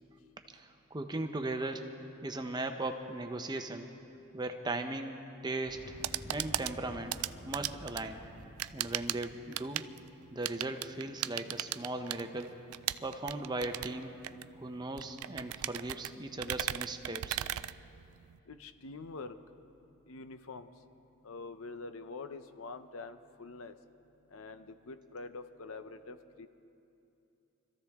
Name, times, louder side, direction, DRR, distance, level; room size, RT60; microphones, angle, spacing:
voice 1, 0.5-1.9 2.2-3.9 4.3-5.8 6.3-7.1 7.4-8.2 8.7-9.8 10.3-12.5 13.0-14.1 14.6-17.4, right 2 dB, 20° right, 6 dB, 0.7 m, -38 dB
sound 1, 5.7-9.6, equal, 45° left, 1.8 m, -50 dB
sound 2, 5.8-18.4, right 14 dB, 90° right, 0.4 m, -39 dB
voice 2, 18.5-19.4 20.1-20.7 21.2-23.7 24.3-26.5, left 3 dB, 70° left, 10 dB, 0.7 m, -45 dB
25.0 x 14.5 x 3.6 m, 2.8 s
head